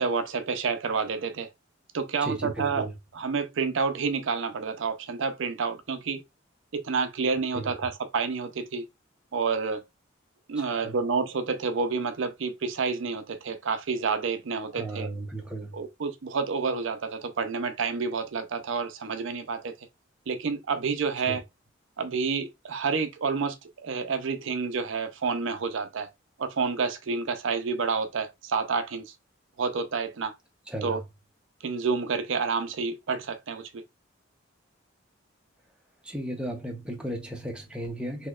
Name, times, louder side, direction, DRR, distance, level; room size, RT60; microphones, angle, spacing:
voice 1, 0.0-1.5 1.9-2.9 3.1-6.2 6.7-8.8 9.3-9.8 10.5-15.1 15.7-19.7 20.3-21.4 22.0-26.1 26.4-29.1 29.6-30.3 30.8-31.0 31.6-33.8, right 5 dB, 70° right, 0.5 m, -29 dB
voice 2, 2.2-2.9 7.5-7.8 10.5-11.0 14.7-15.8 21.3-21.4 30.7-31.0 36.0-38.3, right 1 dB, 5° right, 0.7 m, -35 dB
4.1 x 2.8 x 2.3 m
head